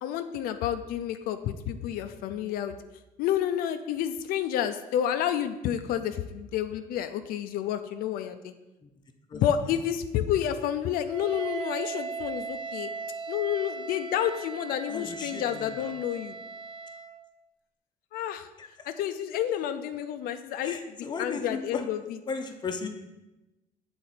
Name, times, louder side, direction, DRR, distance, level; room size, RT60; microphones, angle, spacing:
voice 1, 0.0-2.7 3.2-8.5 9.3-12.9 13.3-16.4 18.1-18.5 18.9-20.8 21.2-22.0, left 10 dB, 90° left, 8 dB, 0.4 m, -30 dB
Wind instrument woodwind instrument, 11.1-17.2, right 5 dB, 35° right, 0.3 m, -38 dB
voice 2, 14.9-15.9 18.6-18.9 20.6-21.8 22.3-22.9, left 5 dB, 30° left, 5 dB, 0.6 m, -36 dB
7.6 x 3.9 x 4.1 m, 1.0 s
cardioid pair, 145°, 15 cm